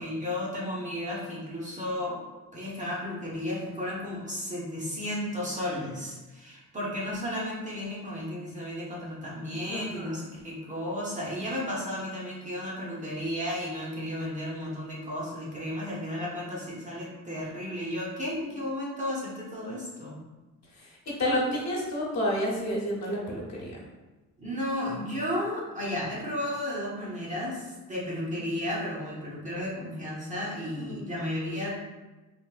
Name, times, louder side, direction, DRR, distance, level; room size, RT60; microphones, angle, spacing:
voice 1, 0.0-2.2 2.5-20.2 24.4-31.8, left 1 dB, 20° right, -5 dB, 0.7 m, -33 dB
voice 2, 9.7-10.1 20.8-23.8 30.8-31.0, equal, 50° left, -4 dB, 1.0 m, -30 dB
3.4 x 2.6 x 2.4 m, 1.2 s
cardioid pair, 135°, 34 cm